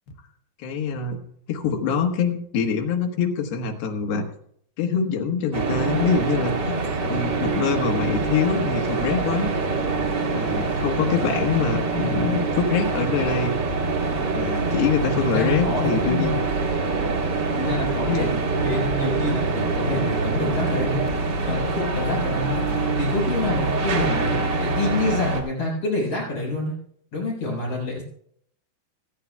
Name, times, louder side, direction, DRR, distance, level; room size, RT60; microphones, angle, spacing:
voice 1, 0.6-1.2 1.5-4.3 4.8-6.8 7.1-9.5 10.2-13.6 14.2-16.5 18.1-18.4 23.4-23.6, left 5 dB, 75° left, 4 dB, 3.1 m, -25 dB
sound 1, 5.5-25.4, right 3 dB, 75° right, 0.9 m, -25 dB
voice 2, 15.2-16.4 17.6-21.0 21.5-22.6 23.0-26.7 27.1-28.0, left 2 dB, 45° left, -4 dB, 5.2 m, -27 dB
25.5 x 9.5 x 2.3 m, 0.66 s
omnidirectional pair, 4.4 m